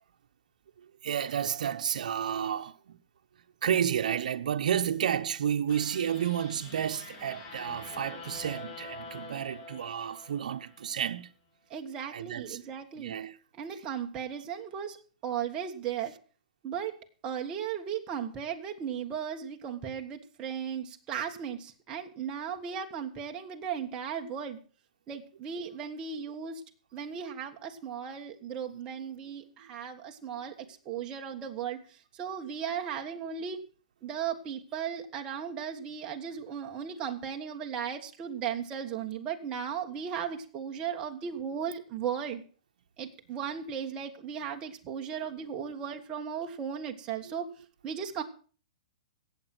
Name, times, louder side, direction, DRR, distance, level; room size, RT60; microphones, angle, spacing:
voice 1, 1.0-3.0 3.6-11.3 12.1-12.6 13.0-13.4 47.3-47.4, right 9 dB, 80° right, 0.9 m, -31 dB
sound 1, 5.7-11.0, left 4 dB, 35° left, 3.6 m, -46 dB
voice 2, 11.7-13.1 13.6-15.0 15.2-16.1 16.6-17.0 17.2-24.6 25.1-26.6 26.9-30.5 30.8-33.6 34.0-42.4 43.0-47.5 47.8-48.2, right 8 dB, 25° right, 1.5 m, -36 dB
17.5 x 7.4 x 6.0 m
hypercardioid pair, 155°, 4 cm